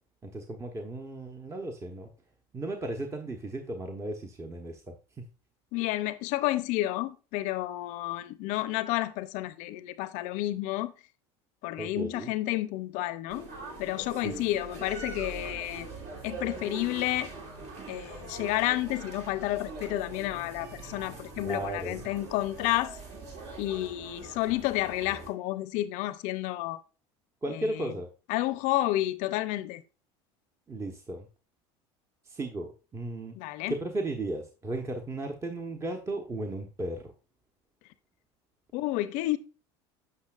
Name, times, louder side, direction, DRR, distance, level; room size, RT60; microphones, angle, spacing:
voice 1, 0.2-2.1 2.5-4.8 11.8-12.3 14.2-14.5 21.4-22.0 27.4-28.1 30.7-31.3 32.3-33.4 33.7-37.1, right 2 dB, 20° right, 1.0 m, -35 dB
voice 2, 5.7-10.9 11.6-13.5 13.8-15.9 16.2-17.3 17.9-23.0 23.6-26.8 27.5-27.9 28.3-29.8 33.4-33.7 38.7-39.4, left 16 dB, 65° left, 0.6 m, -30 dB
sound 1, 13.3-25.3, right 3 dB, 55° right, 2.3 m, -43 dB
8.2 x 5.9 x 2.4 m
supercardioid pair, 100°, 14 cm